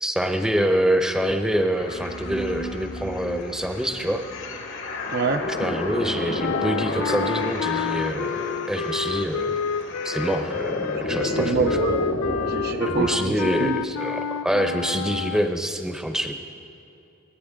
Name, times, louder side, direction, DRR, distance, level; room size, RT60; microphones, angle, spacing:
voice 1, 0.0-4.2 5.6-9.6 10.0-11.8 12.9-16.3, equal, 5° right, 5 dB, 0.8 m, -25 dB
sound 1, 1.7-13.5, left 2 dB, 60° left, 1.4 m, -31 dB
voice 2, 5.1-5.4 11.1-12.1 12.4-13.8, right 4 dB, 45° right, 6 dB, 0.5 m, -26 dB
sound 2, 6.4-15.5, left 7 dB, 80° left, 0.4 m, -29 dB
27.0 x 9.6 x 3.6 m, 2.8 s
head